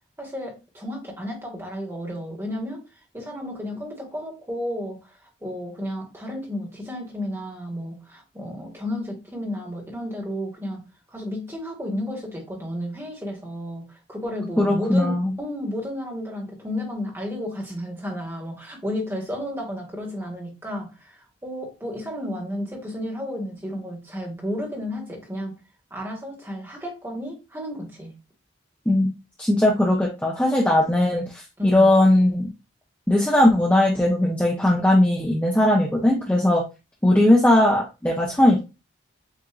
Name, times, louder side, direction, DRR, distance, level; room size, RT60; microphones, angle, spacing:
voice 1, 0.2-2.8 3.1-10.8 11.1-25.5 25.9-28.2 31.6-31.9, left 1 dB, 15° right, 1.4 m, -32 dB
voice 2, 14.6-15.3 28.9-29.1 29.4-32.5 33.1-36.6 37.0-38.6, left 1 dB, 5° left, 0.6 m, -19 dB
7.6 x 2.6 x 2.4 m
head